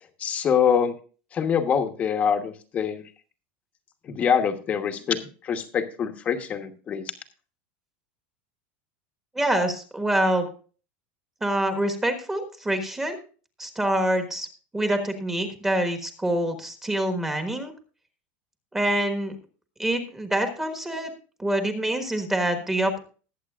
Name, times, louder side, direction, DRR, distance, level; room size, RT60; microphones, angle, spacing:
voice 1, 0.2-0.9 1.3-3.0 4.0-7.1, left 7 dB, 25° left, 7 dB, 1.1 m, -25 dB
voice 2, 9.3-10.5 11.4-13.2 13.6-14.5 14.7-17.7 18.7-19.3 19.8-21.1 21.4-23.0, right 1 dB, 5° right, 6 dB, 1.3 m, -25 dB
20.5 x 8.1 x 2.4 m, 0.38 s
supercardioid pair, 165°, 6 cm